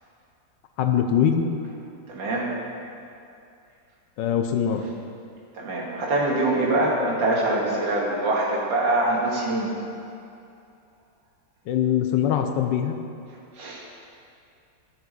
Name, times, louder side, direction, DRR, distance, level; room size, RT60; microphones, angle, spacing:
voice 1, 0.8-1.5 4.2-4.8 11.7-12.9, left 8 dB, 80° left, 6 dB, 1.3 m, -22 dB
voice 2, 2.1-2.5 5.5-9.7 13.6-13.8, right 2 dB, 85° right, -3 dB, 2.3 m, -24 dB
13.5 x 5.9 x 3.9 m, 2.6 s
omnidirectional pair, 2.0 m